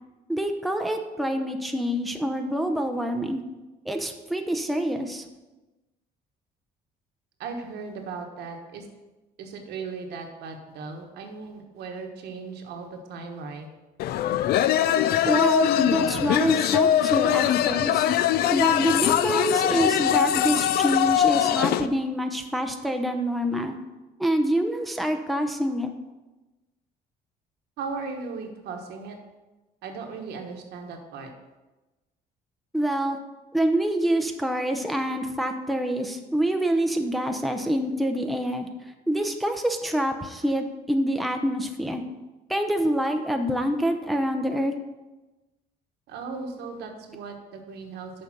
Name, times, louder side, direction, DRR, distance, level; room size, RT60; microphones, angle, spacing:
voice 1, 0.3-3.4 3.9-5.2 15.2-18.1 18.5-23.8 24.2-25.9 32.7-33.2 33.5-38.7 39.1-42.0 42.5-44.7, right 1 dB, ahead, 5 dB, 0.6 m, -26 dB
voice 2, 7.4-8.9 9.4-13.7 27.8-29.2 29.8-31.3 46.1-48.1, right 4 dB, 75° right, 4 dB, 1.2 m, -37 dB
sound 1, 14.0-21.9, left 10 dB, 65° left, 0.4 m, -22 dB
6.6 x 5.1 x 6.0 m, 1.1 s
cardioid pair, 110°, 17 cm